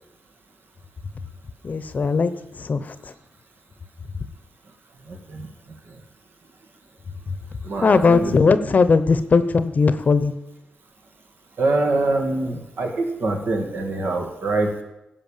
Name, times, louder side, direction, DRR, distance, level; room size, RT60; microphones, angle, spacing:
voice 1, 1.6-2.3 2.6-2.9 7.8-10.4, left 4 dB, 50° left, 13 dB, 0.8 m, -18 dB
voice 2, 5.1-5.5 7.6-8.4 11.6-14.8, right 2 dB, 70° right, 4 dB, 2.0 m, -24 dB
16.5 x 5.7 x 7.3 m, 0.93 s
wide cardioid pair, 95°, 4 cm